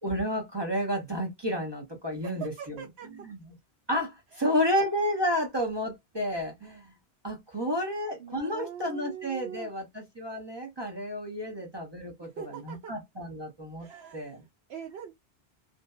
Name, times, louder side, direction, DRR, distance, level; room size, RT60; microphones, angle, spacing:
voice 1, 0.0-2.8 3.2-3.4 3.9-6.9 7.2-13.9 14.1-14.4, equal, 30° right, 0.7 m, -31 dB
voice 2, 2.1-3.3 4.3-4.7 7.5-7.7 8.2-9.7 11.4-11.6 12.2-12.9 13.8-15.1, right 8 dB, 80° right, 0.8 m, -43 dB
2.7 x 2.1 x 2.2 m
omnidirectional pair, 1.1 m